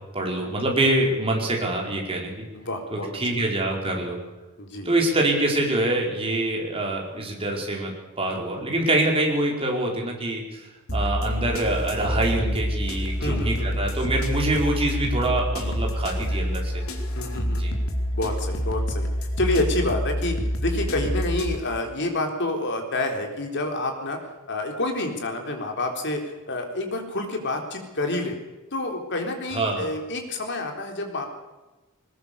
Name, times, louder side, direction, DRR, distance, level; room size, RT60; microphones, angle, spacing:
voice 1, 0.1-2.5 2.9-4.2 4.8-16.8 17.5-17.7 29.5-29.9, right 1 dB, 25° right, 0 dB, 4.8 m, -25 dB
voice 2, 2.5-3.5 4.6-4.9 13.2-13.8 17.2-17.6 18.1-19.1 19.4-24.2 24.5-28.4 28.7-31.3, left 2 dB, 55° left, 3 dB, 3.9 m, -28 dB
sound 1, 10.9-21.6, equal, 70° left, 3.2 m, -27 dB
21.0 x 20.0 x 7.0 m, 1.1 s
head